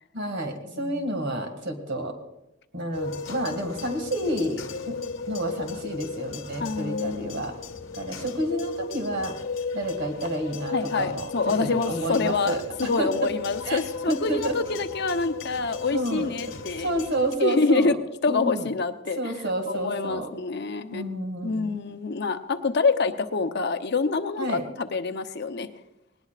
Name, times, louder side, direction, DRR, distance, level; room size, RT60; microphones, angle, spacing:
voice 1, 0.1-2.2 2.7-5.0 5.3-7.6 7.9-9.4 9.7-13.3 13.6-14.6 15.9-16.3 16.8-18.0 18.3-18.7 19.2-20.3 20.9-21.8 24.4-24.6, right 1 dB, 60° right, 5 dB, 2.1 m, -30 dB
voice 2, 0.7-1.2 6.6-7.5 10.7-16.9 17.4-18.0 18.2-19.3 19.7-21.1 21.4-25.7, left 4 dB, 60° left, 8 dB, 0.8 m, -26 dB
sound 1, 2.9-17.4, left 4 dB, 80° left, 1.2 m, -35 dB
19.5 x 19.0 x 2.5 m, 0.92 s
head